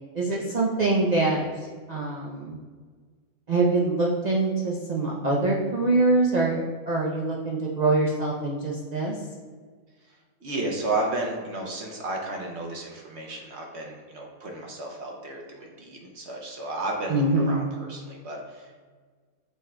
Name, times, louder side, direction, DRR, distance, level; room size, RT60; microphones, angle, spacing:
voice 1, 0.1-2.6 3.5-9.2 17.1-17.6, right 2 dB, 80° right, -3 dB, 0.3 m, -24 dB
voice 2, 10.4-18.8, right 2 dB, 60° right, 0 dB, 0.9 m, -33 dB
6.7 x 3.6 x 2.2 m, 1.5 s
omnidirectional pair, 1.5 m